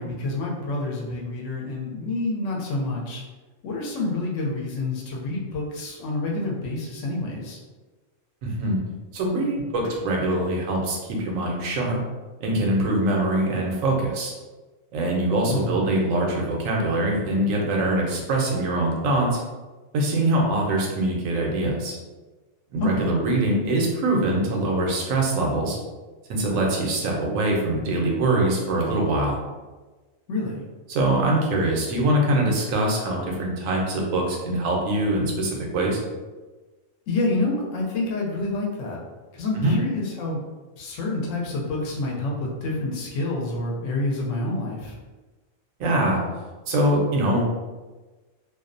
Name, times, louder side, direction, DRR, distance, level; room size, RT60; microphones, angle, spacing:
voice 1, 0.0-3.2 3.6-7.6 15.5-15.8 22.8-23.1 30.3-30.6 37.1-39.0 39.3-40.4 40.8-44.9, left 2 dB, 75° left, -2 dB, 0.9 m, -28 dB
voice 2, 8.4-8.8 9.1-12.0 12.4-14.3 14.9-19.4 19.9-22.0 22.7-25.8 26.3-29.4 30.9-36.0 39.6-39.7 45.8-46.2 46.7-47.4, right 1 dB, 85° right, -1 dB, 1.0 m, -23 dB
2.5 x 2.0 x 2.5 m, 1.2 s
omnidirectional pair, 1.4 m